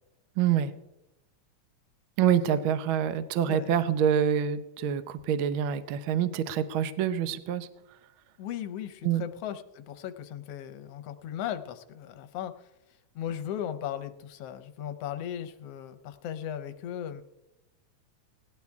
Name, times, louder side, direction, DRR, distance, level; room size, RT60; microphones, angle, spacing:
voice 1, 0.4-0.7 2.2-7.7 9.0-9.2, right 9 dB, 90° right, 12 dB, 1.1 m, -26 dB
voice 2, 8.4-12.7 13.1-17.2, left 10 dB, 70° left, 9 dB, 1.6 m, -37 dB
18.5 x 11.5 x 3.6 m, 0.93 s
omnidirectional pair, 3.4 m